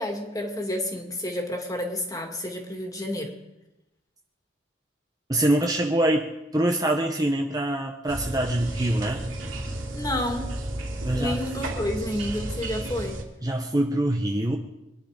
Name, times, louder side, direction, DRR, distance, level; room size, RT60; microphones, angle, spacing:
voice 1, 0.0-3.3 9.9-10.5 11.1-13.2, left 1 dB, 20° left, 3 dB, 2.4 m, -30 dB
voice 2, 5.3-9.2 11.0-11.4 13.4-14.6, right 1 dB, 20° right, 3 dB, 0.9 m, -24 dB
sound 1, 8.1-13.2, right 1 dB, 85° right, 2.9 m, -32 dB
24.5 x 10.5 x 5.1 m, 0.96 s
head